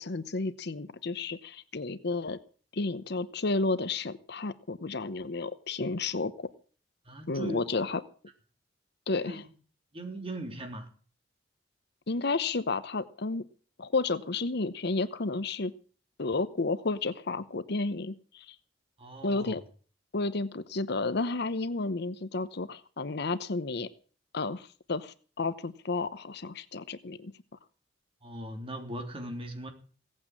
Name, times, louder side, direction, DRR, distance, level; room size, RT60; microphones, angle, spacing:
voice 1, 0.0-2.4 2.7-6.5 7.3-8.0 9.1-9.4 12.1-13.4 13.8-15.7 16.2-18.6 19.2-19.6 20.1-23.9 24.3-27.3, left 3 dB, 60° left, 0.9 m, -32 dB
voice 2, 7.1-7.7 9.3-9.4 9.9-10.9 19.0-19.5 28.2-29.7, right 1 dB, 30° right, 3.4 m, -39 dB
17.5 x 8.7 x 7.3 m
head